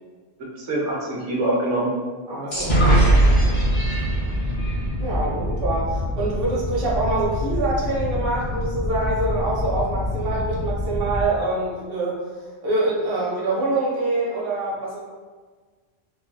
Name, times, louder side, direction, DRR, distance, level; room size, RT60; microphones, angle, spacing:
voice 1, 0.7-1.9 2.4-3.3, right 1 dB, 75° right, -4 dB, 1.1 m, -26 dB
voice 2, 2.3-3.1 5.0-12.2 12.6-15.0, right 2 dB, 60° right, -4 dB, 0.9 m, -25 dB
sound 1, 2.5-6.2, right 1 dB, 45° left, 0.7 m, -20 dB
sound 2, 3.4-11.3, left 2 dB, 30° right, 0.5 m, -27 dB
3.2 x 2.5 x 2.2 m, 1.4 s
omnidirectional pair, 1.2 m